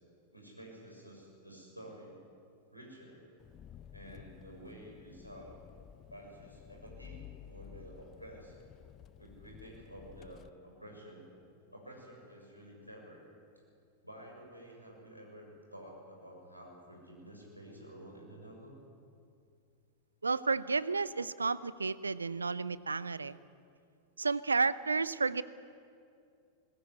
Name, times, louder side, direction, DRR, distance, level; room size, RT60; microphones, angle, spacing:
voice 1, 0.3-2.2 2.7-3.2 3.9-5.6 6.1-7.2 7.5-8.6 9.2-11.3 11.7-13.2 14.0-18.7, right 1 dB, 90° left, -1 dB, 6.7 m, -51 dB
Engine, 3.4-10.5, left 9 dB, 30° left, 0.6 m, -53 dB
voice 2, 20.2-23.4 24.2-25.4, right 4 dB, 75° right, 18 dB, 0.7 m, -31 dB
21.5 x 19.5 x 9.7 m, 2.4 s
figure-of-eight pair, 90°, 0 cm